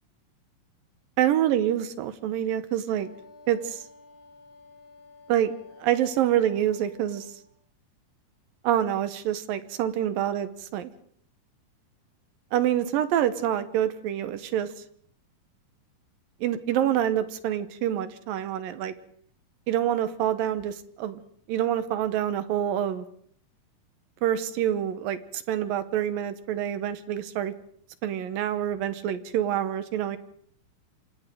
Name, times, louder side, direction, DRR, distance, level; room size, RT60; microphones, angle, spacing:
voice 1, 1.2-3.1 3.5-3.8 5.3-5.5 5.8-7.3 8.6-10.9 12.5-14.7 16.4-18.9 19.7-21.2 21.5-23.0 24.2-27.5 28.0-30.2, right 11 dB, 85° right, 11 dB, 2.8 m, -26 dB
Wind instrument woodwind instrument, 2.9-7.5, left 3 dB, 35° left, 4.6 m, -52 dB
27.5 x 26.0 x 3.8 m, 0.63 s
omnidirectional pair, 4.0 m